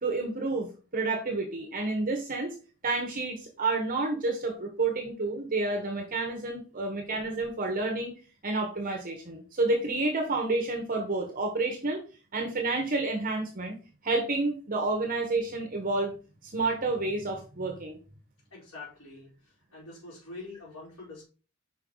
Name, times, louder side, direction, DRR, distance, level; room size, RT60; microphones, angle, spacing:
voice 1, 0.0-2.5 2.8-8.1 8.4-12.0 12.3-13.8 14.0-16.1 16.4-18.0, right 3 dB, 40° right, 2 dB, 1.2 m, -29 dB
voice 2, 18.5-21.2, left 3 dB, 85° left, -9 dB, 3.9 m, -45 dB
5.6 x 5.4 x 3.9 m, 0.35 s
head